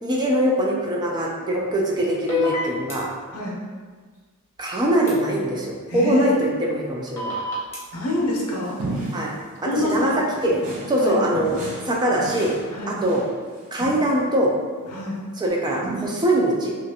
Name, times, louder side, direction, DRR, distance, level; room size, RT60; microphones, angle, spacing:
voice 1, 0.0-3.1 4.6-7.4 9.1-9.4 9.6-10.6 10.9-11.6 11.8-12.5 12.9-13.2 13.7-14.5 15.4-16.8, right 1 dB, 20° right, -2 dB, 0.3 m, -22 dB
sound 1, 2.3-2.9 5.1-5.2 7.2-7.8, left 4 dB, 10° left, 0.8 m, -25 dB
voice 2, 5.9-6.3 7.9-8.8 9.6-10.2 11.0-11.2 12.7-13.0 14.9-15.2, left 1 dB, 80° left, -3 dB, 0.7 m, -26 dB
sound 2, 7.9-9.4 9.8-11.0 11.3-14.2 14.8-15.1 15.8-16.1, right 3 dB, 70° right, 0.7 m, -34 dB
3.0 x 2.5 x 2.8 m, 1.5 s
head